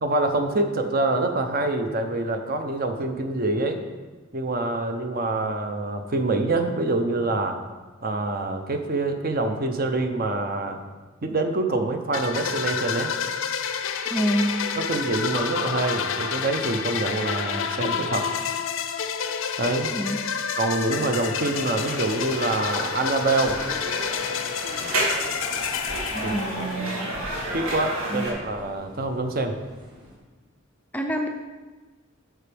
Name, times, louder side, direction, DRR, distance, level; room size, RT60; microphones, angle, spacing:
voice 1, 0.0-3.8 4.3-7.6 8.0-10.8 11.2-13.1 14.8-18.3 19.6-19.9 20.6-23.6 26.2-26.3 27.5-29.6, right 2 dB, 45° right, 6 dB, 0.7 m, -25 dB
sound 1, 12.1-26.9, left 7 dB, 70° left, 0.5 m, -29 dB
voice 2, 14.1-14.6 19.9-20.2 26.1-27.1 28.1-28.2 30.9-31.3, equal, 10° left, 2 dB, 0.4 m, -27 dB
sound 2, 21.5-28.3, right 1 dB, 90° right, 2.0 m, -31 dB
sound 3, 25.0-30.2, equal, 20° right, 1.4 m, -48 dB
9.0 x 6.0 x 3.4 m, 1.3 s
head